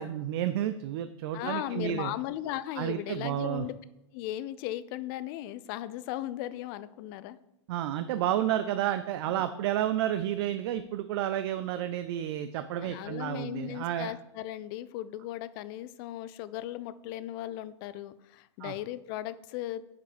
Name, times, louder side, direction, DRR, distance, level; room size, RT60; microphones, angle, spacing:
voice 1, 0.0-2.1 2.8-3.6 7.7-14.1 18.6-18.7, right 11 dB, 55° right, 11 dB, 0.4 m, -31 dB
voice 2, 1.3-3.8 4.1-7.4 9.3-9.4 12.8-19.8, left 13 dB, 45° left, 15 dB, 0.4 m, -37 dB
5.4 x 5.1 x 5.0 m, 0.88 s
hypercardioid pair, 115°, 16 cm